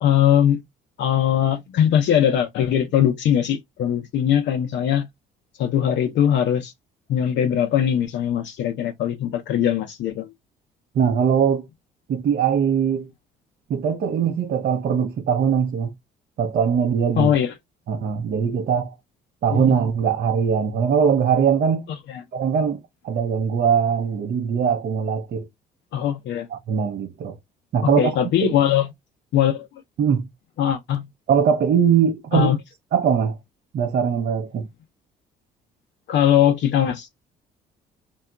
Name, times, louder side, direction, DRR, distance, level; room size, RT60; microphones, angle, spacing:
voice 1, 0.0-0.6 1.0-5.1 5.6-6.7 7.1-10.3 17.2-17.5 19.5-19.7 22.1-22.2 25.9-26.5 27.8-28.9 29.3-29.7 30.6-31.1 32.3-32.6 36.1-37.1, left 10 dB, 60° left, 0.6 m, -20 dB
voice 2, 10.9-11.7 12.1-13.1 13.7-15.9 16.4-17.3 17.9-18.9 19.4-21.8 22.3-25.5 26.5-27.3 27.7-28.1 28.4-28.5 30.0-30.2 31.3-32.5 32.9-33.4 33.7-34.7, right 7 dB, 50° right, 0.5 m, -21 dB
2.8 x 2.3 x 2.3 m
hypercardioid pair, 60°, 21 cm